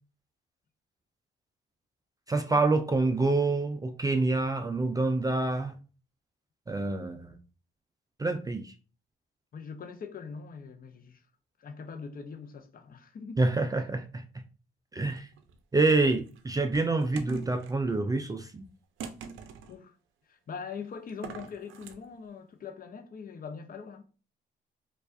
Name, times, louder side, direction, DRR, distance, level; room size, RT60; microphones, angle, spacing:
voice 1, 2.3-5.7 6.7-7.4 8.2-8.7 13.4-14.2 14.9-15.3 15.7-18.7, right 3 dB, 20° right, 0.3 m, -27 dB
voice 2, 9.5-11.2 11.6-13.4 19.7-19.9 20.3-24.0, left 5 dB, 45° left, 0.7 m, -42 dB
sound 1, 15.0-15.6 16.3-17.8 19.0-19.8 21.1-22.0, right 6 dB, 80° right, 0.5 m, -43 dB
4.6 x 2.4 x 2.5 m
cardioid pair, 90°, 20 cm